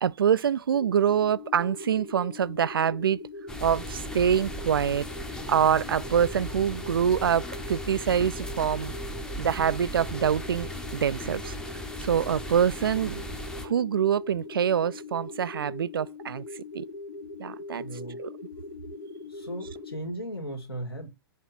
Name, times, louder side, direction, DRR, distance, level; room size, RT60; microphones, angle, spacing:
voice 1, 0.0-3.2 3.6-5.1 5.5-9.0 9.4-11.6 12.0-13.2 13.6-16.4 16.7-16.8 17.4-17.8 18.2-18.3, right 8 dB, 65° right, 0.4 m, -25 dB
sound 1, 0.7-20.0, left 3 dB, 45° left, 2.2 m, -41 dB
sound 2, 3.5-13.7, right 1 dB, 5° left, 0.8 m, -38 dB
voice 2, 17.8-18.2 19.3-21.1, right 1 dB, 75° left, 2.4 m, -36 dB
7.3 x 3.1 x 5.9 m
figure-of-eight pair, 105°, 13 cm